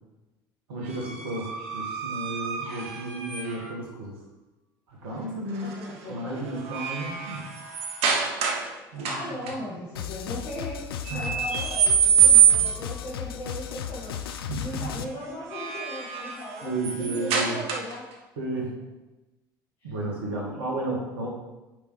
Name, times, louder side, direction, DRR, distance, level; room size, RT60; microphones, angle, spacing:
voice 1, 0.7-4.2 4.9-5.7 6.1-7.5 8.9-9.3 11.1-11.3 14.5-14.9 16.6-17.6 18.4-18.7 19.8-21.3, right 2 dB, 75° right, -1 dB, 1.9 m, -33 dB
sound 1, 0.9-3.8 5.5-5.9 6.3-8.7 9.0-9.5 11.0-12.9 15.2-18.1, right 8 dB, 55° right, 1.1 m, -25 dB
voice 2, 5.6-6.3 8.9-10.8 11.1-14.2 14.6-18.0 19.8-19.9, left 1 dB, 45° left, -6 dB, 2.0 m, -37 dB
sound 2, 9.9-15.0, left 9 dB, 80° left, 0.4 m, -35 dB
8.1 x 5.2 x 3.4 m, 1.0 s
figure-of-eight pair, 65°, 12 cm